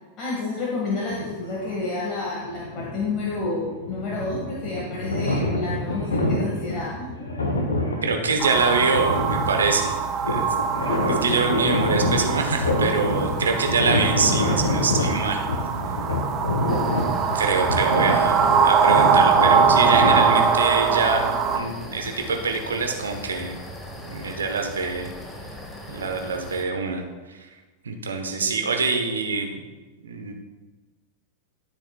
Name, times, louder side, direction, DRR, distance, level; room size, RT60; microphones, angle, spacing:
voice 1, 0.2-7.1 13.5-13.6 28.4-28.5, left 3 dB, 30° left, -4 dB, 1.8 m, -30 dB
sound 1, 1.0-1.8 2.4-20.3, left 1 dB, 75° left, 1.3 m, -26 dB
voice 2, 8.0-15.4 17.3-23.6 24.0-25.1 25.9-27.0 27.8-29.6 30.0-30.3, right 4 dB, 70° right, 4 dB, 1.0 m, -25 dB
sound 2, 8.4-21.6, right 6 dB, 35° right, 0.6 m, -23 dB
sound 3, 16.7-26.6, left 1 dB, 10° left, 1.4 m, -39 dB
12.5 x 7.1 x 2.4 m, 1.2 s
figure-of-eight pair, 90°, 0 cm